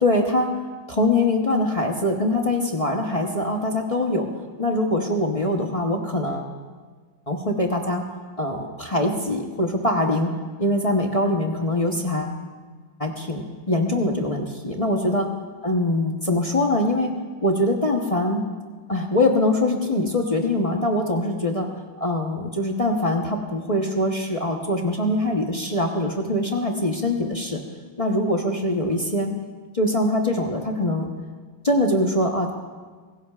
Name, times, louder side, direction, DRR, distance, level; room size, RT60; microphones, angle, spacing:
voice 1, 0.0-0.5 0.9-4.3 4.6-6.5 7.3-8.0 8.4-10.3 10.6-12.4 13.0-15.3 15.6-17.1 17.4-18.4 18.9-21.7 22.0-27.6 28.0-29.3 29.7-31.1 31.6-32.5, left 1 dB, 35° left, 1 dB, 0.5 m, -23 dB
22.5 x 16.5 x 2.4 m, 1.5 s
omnidirectional pair, 2.2 m